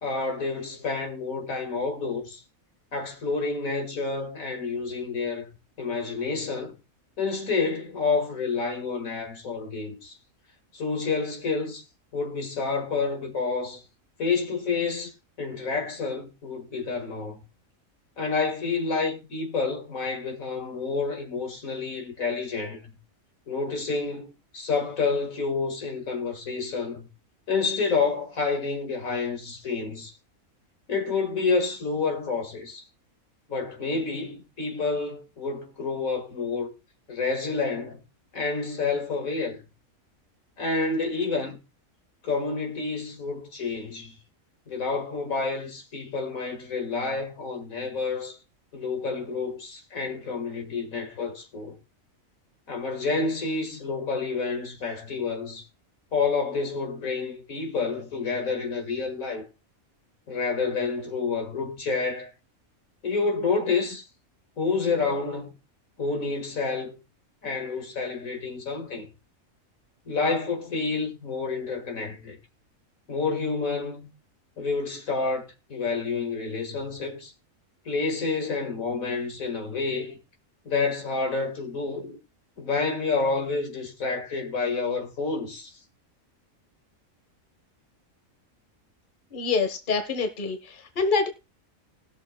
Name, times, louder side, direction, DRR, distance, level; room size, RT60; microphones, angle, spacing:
voice 1, 0.0-2.4 2.9-6.7 7.2-10.1 10.7-11.8 12.1-13.8 14.2-15.1 15.4-17.4 18.2-23.0 23.5-27.1 27.5-30.1 30.9-32.8 33.5-36.7 37.1-38.0 38.3-39.6 40.6-41.6 42.2-44.2 44.7-48.4 48.7-51.8 52.7-55.6 56.1-59.5 60.3-62.3 63.0-64.0 64.6-65.5 66.0-66.9 67.4-69.1 70.1-72.4 73.1-74.1 74.6-77.3 77.9-80.2 80.7-82.2 82.6-85.7, left 4 dB, 80° left, 2.3 m, -29 dB
voice 2, 89.3-90.6 91.0-91.3, left 4 dB, 40° left, 1.3 m, -25 dB
19.5 x 6.7 x 2.3 m
omnidirectional pair, 1.4 m